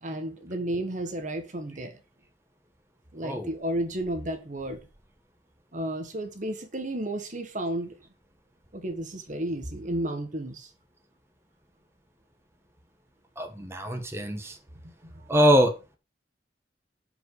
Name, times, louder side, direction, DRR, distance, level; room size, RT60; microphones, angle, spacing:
voice 1, 0.0-1.9 3.1-4.8 5.7-7.9 8.7-10.7 15.0-15.2, right 1 dB, 45° right, 1.5 m, -32 dB
voice 2, 13.4-14.5 15.3-15.7, equal, 15° right, 1.6 m, -23 dB
9.2 x 5.3 x 6.6 m
head